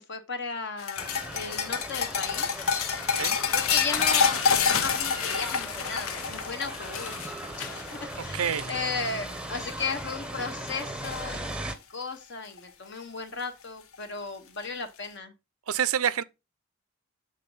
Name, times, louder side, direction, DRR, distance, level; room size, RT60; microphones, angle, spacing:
voice 1, 0.0-2.5 3.5-11.6 11.9-15.3, left 4 dB, 55° left, 0.9 m, -35 dB
sound 1, 0.8-9.3 9.6-10.0 10.4-11.2 12.6-12.7 13.9-14.0, left 6 dB, 85° left, 1.0 m, -28 dB
sound 2, 1.0-11.8, right 1 dB, 5° right, 0.7 m, -38 dB
voice 2, 8.2-8.7 15.7-16.2, right 8 dB, 85° right, 0.6 m, -27 dB
7.4 x 3.9 x 5.3 m
head